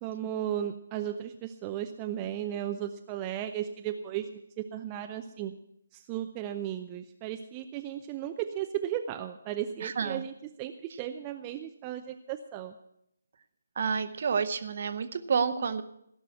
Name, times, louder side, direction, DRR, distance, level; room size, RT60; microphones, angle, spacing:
voice 1, 0.0-4.3 4.6-5.5 5.9-10.3 10.6-12.8, right 11 dB, 20° right, 6 dB, 0.6 m, -35 dB
voice 2, 9.8-10.2 13.8-15.8, right 6 dB, 45° right, 11 dB, 1.0 m, -29 dB
16.5 x 6.1 x 9.6 m, 0.77 s
figure-of-eight pair, 145°, 0 cm